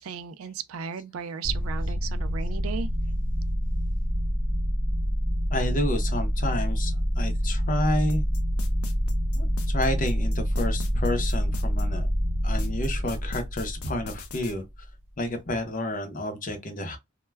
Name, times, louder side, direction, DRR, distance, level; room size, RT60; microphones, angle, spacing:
voice 1, 0.0-2.9, right 7 dB, 70° right, 0.3 m, -35 dB
sound 1, 1.4-14.8, equal, 20° right, 0.9 m, -27 dB
voice 2, 5.5-8.2 9.3-12.1 12.4-14.6 15.2-17.0, left 1 dB, 40° left, 0.6 m, -30 dB
sound 2, 8.1-11.8 12.6-14.5, left 4 dB, 85° left, 0.5 m, -42 dB
2.2 x 2.1 x 3.2 m
head